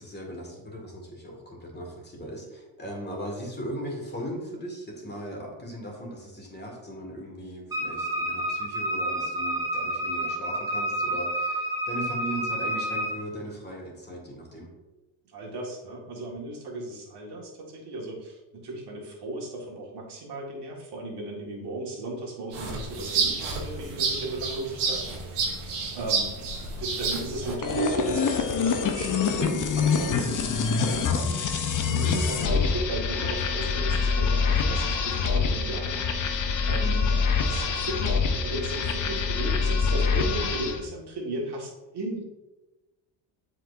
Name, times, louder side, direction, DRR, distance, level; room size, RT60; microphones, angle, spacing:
voice 1, 0.0-14.7, equal, 20° left, -1 dB, 2.1 m, -38 dB
Wind instrument woodwind instrument, 7.7-13.2, right 1 dB, 5° right, 1.6 m, -29 dB
voice 2, 15.3-42.2, right 2 dB, 55° right, -2 dB, 1.9 m, -36 dB
sound 1, 22.5-27.5, right 4 dB, 85° right, 1.3 m, -30 dB
sound 2, 27.6-40.8, left 5 dB, 40° left, 0.8 m, -25 dB
7.5 x 4.7 x 2.7 m, 1.1 s
supercardioid pair, 80°, 49 cm